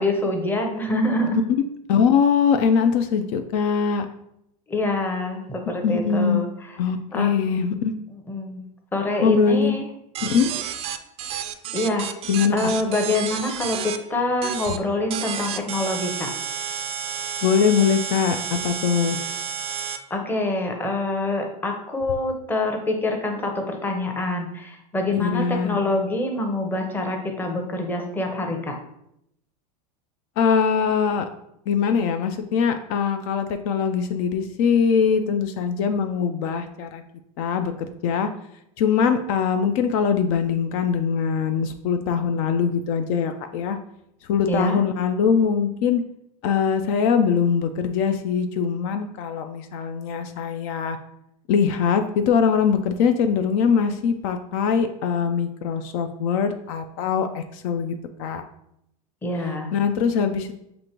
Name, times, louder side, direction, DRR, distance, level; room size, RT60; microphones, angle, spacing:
voice 1, 0.0-1.4 4.7-6.8 7.1-7.3 8.1-8.6 8.9-9.8 11.7-12.1 12.5-16.3 20.1-28.8 44.5-44.8 59.2-59.7, left 2 dB, 10° left, 2 dB, 0.7 m, -25 dB
voice 2, 1.9-4.1 5.8-6.4 6.8-7.9 9.2-9.8 10.2-10.5 12.3-12.7 17.4-19.2 25.1-25.8 30.4-31.3 31.7-37.0 37.4-38.3 38.8-43.8 44.3-46.0 46.4-51.0 51.5-58.4 59.7-60.6, left 6 dB, 60° left, 7 dB, 0.4 m, -22 dB
sound 1, 10.1-14.0 14.4-14.8 15.1-20.0, right 8 dB, 30° right, 0.4 m, -31 dB
6.2 x 2.5 x 3.0 m, 0.79 s
supercardioid pair, 125°, 19 cm